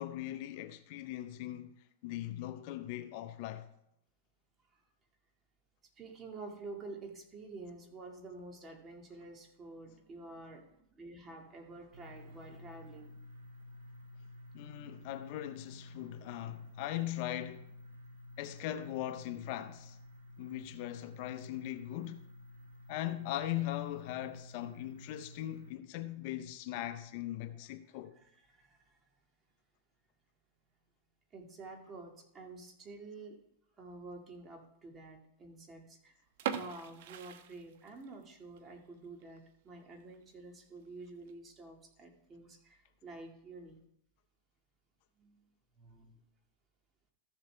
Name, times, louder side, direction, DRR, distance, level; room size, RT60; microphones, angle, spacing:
voice 1, 0.0-1.7 2.0-3.7 14.5-17.7 18.4-20.0 20.4-22.2 22.9-28.1, left 13 dB, 55° left, 0.7 m, -40 dB
voice 2, 6.0-13.1 24.7-24.9 28.1-29.0 31.3-33.4 33.8-43.8 45.2-45.5 45.8-46.2, right 3 dB, 25° right, 1.9 m, -49 dB
sound 1, 11.9-25.7, left 1 dB, 85° right, 2.4 m, -52 dB
sound 2, 36.3-38.2 38.6-38.7 39.2-39.4 39.8-39.9 40.1-40.2 41.0-41.3, right 9 dB, 65° right, 0.9 m, -40 dB
14.0 x 7.1 x 3.3 m
hypercardioid pair, 125°, 0 cm